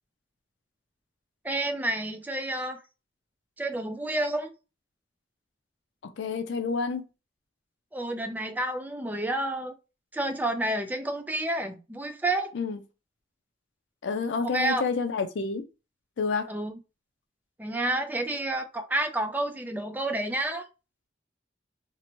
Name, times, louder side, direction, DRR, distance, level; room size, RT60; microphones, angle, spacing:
voice 1, 1.4-2.8 3.6-4.5 7.9-9.7 10.1-12.5 14.4-14.8 16.5-16.8 17.6-20.7, right 1 dB, 10° right, 0.4 m, -29 dB
voice 2, 6.0-7.0 12.5-12.8 14.0-15.7 16.2-16.5, left 4 dB, 80° left, 0.4 m, -29 dB
2.7 x 2.1 x 3.0 m
head